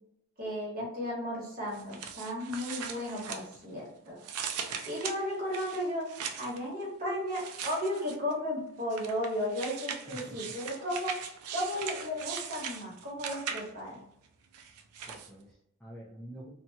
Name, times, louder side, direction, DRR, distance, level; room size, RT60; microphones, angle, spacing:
voice 1, 0.4-4.2 4.9-6.1 6.4-11.2 11.5-14.0, equal, 45° right, -4 dB, 1.2 m, -34 dB
sound 1, 1.7-3.8 4.2-6.6 7.3-8.3 8.9-13.9 14.5-15.3, right 7 dB, 90° right, 0.4 m, -40 dB
voice 2, 10.1-10.5 15.1-16.5, right 1 dB, 5° left, -6 dB, 0.4 m, -47 dB
2.7 x 2.3 x 2.8 m, 0.78 s
head